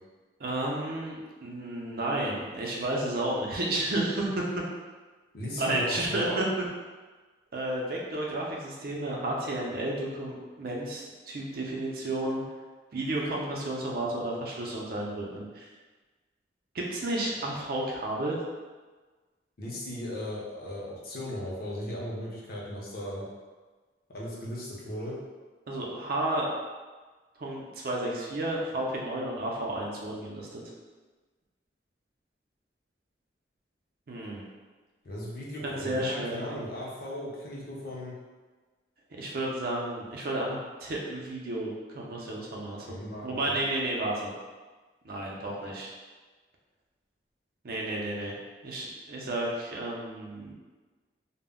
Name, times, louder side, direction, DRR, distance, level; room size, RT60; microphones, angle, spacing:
voice 1, 0.4-4.4 5.6-6.5 7.5-12.4 12.9-15.7 16.7-18.4 25.7-26.5 27.4-30.7 34.1-34.4 35.6-36.6 39.1-44.3 45.0-45.9 47.6-48.4 48.6-50.5, right 1 dB, 55° right, -2 dB, 0.5 m, -32 dB
voice 2, 5.3-6.5 19.6-23.3 24.1-25.2 35.0-38.2 42.8-43.6, left 1 dB, 55° left, -5 dB, 0.6 m, -37 dB
2.1 x 2.0 x 3.5 m, 1.3 s
head